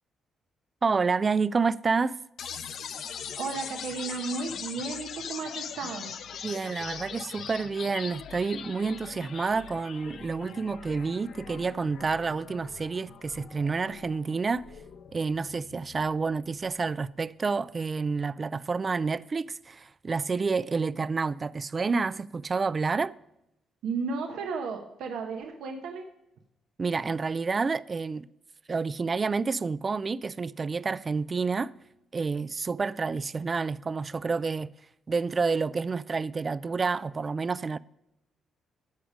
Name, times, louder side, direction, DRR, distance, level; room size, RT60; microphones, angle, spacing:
voice 1, 0.8-2.2 6.4-14.6 15.1-23.1 26.8-28.3 28.7-31.7 32.1-34.7 35.1-37.8, right 4 dB, 35° right, 0.3 m, -29 dB
sound 1, 2.4-16.4, left 7 dB, 70° left, 0.7 m, -41 dB
voice 2, 3.3-6.1 23.8-26.0, right 4 dB, 80° right, 1.0 m, -34 dB
13.5 x 5.0 x 5.1 m
cardioid pair, 90°, 0 cm